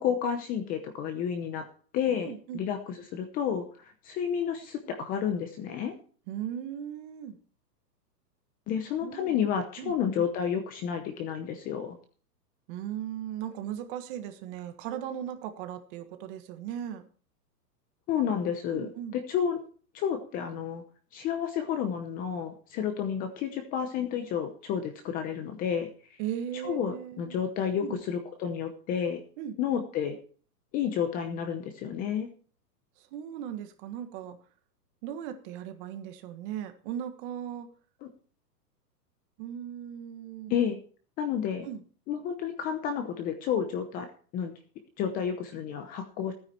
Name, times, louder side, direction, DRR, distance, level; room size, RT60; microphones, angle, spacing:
voice 1, 0.0-1.7 1.9-5.9 8.7-12.0 18.1-19.6 19.9-20.8 21.1-25.9 26.6-29.2 29.6-30.1 30.7-32.3 38.0-38.1 40.5-40.8 41.2-41.7 42.1-44.1 44.3-44.5 45.0-46.3, left 8 dB, 15° left, 7 dB, 0.8 m, -31 dB
voice 2, 2.2-2.6 6.3-7.4 9.0-9.4 9.8-10.3 12.7-17.1 18.7-19.2 26.2-27.4 27.8-28.0 29.4-29.8 33.0-34.4 35.0-37.7 39.4-40.5 41.6-41.8, right 10 dB, 30° right, 8 dB, 1.5 m, -37 dB
15.5 x 9.6 x 4.4 m, 0.43 s
hypercardioid pair, 150°, 49 cm